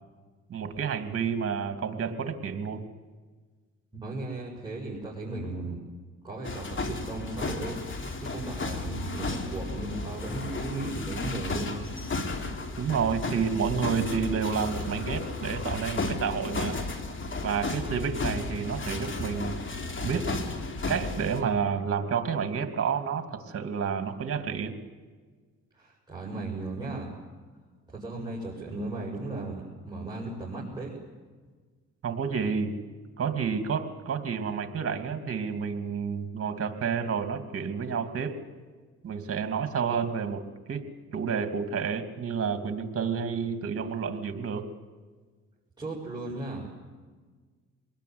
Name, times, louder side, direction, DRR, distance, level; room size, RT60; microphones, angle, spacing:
voice 1, 0.5-2.8 12.8-16.8 17.4-19.6 20.0-20.3 20.9-24.8 32.0-32.7 33.2-38.3 39.0-40.4 40.7-40.8 41.1-44.7, right 6 dB, 50° right, 8 dB, 2.8 m, -30 dB
voice 2, 4.0-5.8 6.2-11.8 25.8-27.1 27.9-30.9 45.8-46.7, right 2 dB, 15° right, -6 dB, 7.4 m, -36 dB
sound 1, 6.4-21.4, left 3 dB, 40° left, 3.4 m, -33 dB
25.5 x 20.5 x 9.7 m, 1.4 s
cardioid pair, 90°, 30 cm